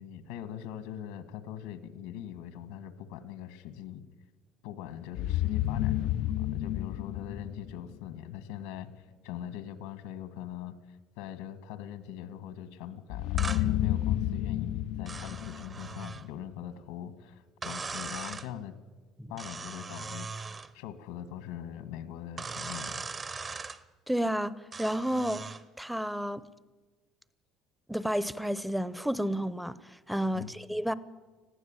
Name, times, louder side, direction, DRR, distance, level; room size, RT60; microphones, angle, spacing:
voice 1, 0.0-4.0 4.6-18.7 19.3-23.0 30.3-30.5, left 10 dB, 90° left, 1.8 m, -42 dB
sound 1, 5.2-8.1 13.1-16.3, left 13 dB, 65° left, 0.6 m, -31 dB
sound 2, 13.4-13.7 15.1-16.3 17.6-18.5 19.4-20.7 22.4-23.8 24.7-25.6, right 4 dB, 25° right, 1.0 m, -39 dB
voice 2, 24.1-25.4 25.8-26.4 27.9-29.8 30.1-30.9, equal, ahead, 0.8 m, -31 dB
20.0 x 15.5 x 9.0 m
supercardioid pair, 110°, 0 cm